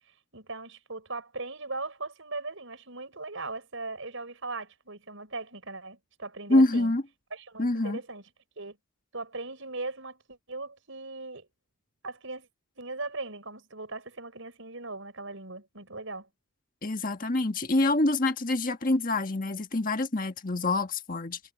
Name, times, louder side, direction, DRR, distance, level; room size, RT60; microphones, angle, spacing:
voice 1, 0.3-6.9 7.3-8.2 8.6-8.8 9.1-11.5 12.0-12.5 12.8-16.3, right 3 dB, 70° right, 5.7 m, -39 dB
voice 2, 6.5-7.0 7.6-8.0 16.8-21.4, left 2 dB, 40° left, 1.6 m, -26 dB
head